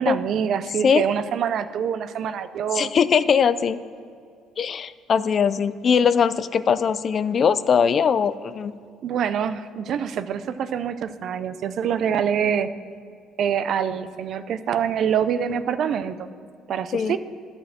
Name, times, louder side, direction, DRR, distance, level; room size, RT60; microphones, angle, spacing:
voice 1, 0.0-2.9 9.0-12.7 13.4-16.3 16.7-17.2, right 8 dB, 55° right, 12 dB, 0.5 m, -25 dB
voice 2, 2.7-3.8 4.6-8.7 16.9-17.2, left 7 dB, 40° left, 15 dB, 0.3 m, -20 dB
11.0 x 4.4 x 7.6 m, 2.3 s
cardioid pair, 115°, 0 cm